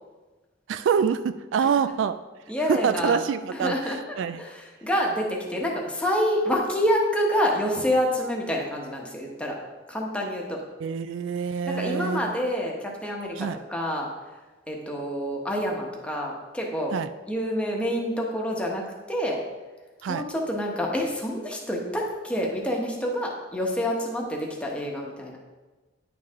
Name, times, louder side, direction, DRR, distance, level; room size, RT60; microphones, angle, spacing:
voice 1, 0.7-2.2 2.7-4.4 10.8-12.4 13.4-13.6 16.9-17.1 20.0-20.2, right 7 dB, 70° right, 12 dB, 0.3 m, -26 dB
voice 2, 2.5-3.2 3.6-9.6 9.9-10.6 11.7-14.1 14.7-16.9 17.3-19.4 20.1-25.4, equal, 5° left, -1 dB, 1.1 m, -27 dB
9.8 x 4.7 x 3.6 m, 1.2 s
head